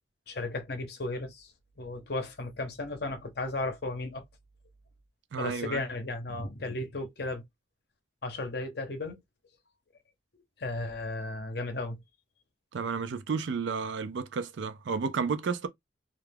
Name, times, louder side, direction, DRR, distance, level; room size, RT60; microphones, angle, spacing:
voice 1, 0.3-1.5 1.8-4.2 5.4-7.4 8.2-9.2 10.6-12.0, left 2 dB, 55° left, 0.6 m, -35 dB
voice 2, 5.3-5.8 12.7-15.7, right 5 dB, 75° right, 0.4 m, -32 dB
2.4 x 2.2 x 3.2 m
head